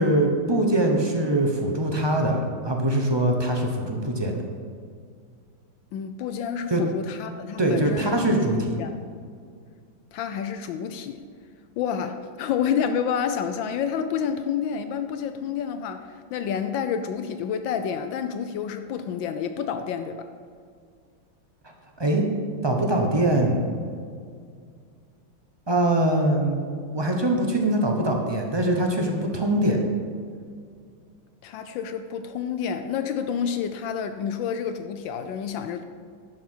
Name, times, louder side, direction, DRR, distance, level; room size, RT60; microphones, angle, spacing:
voice 1, 0.0-2.4 2.6-4.4 6.7-6.8 7.6-8.7 22.0-22.2 22.6-23.7 25.7-26.6 26.9-29.8, right 1 dB, 25° right, 2 dB, 0.6 m, -22 dB
voice 2, 5.9-8.2 8.8-8.9 10.1-11.2 11.8-20.3 31.4-35.8, left 7 dB, 75° left, 8 dB, 1.3 m, -29 dB
11.5 x 5.8 x 6.1 m, 2.2 s
omnidirectional pair, 2.1 m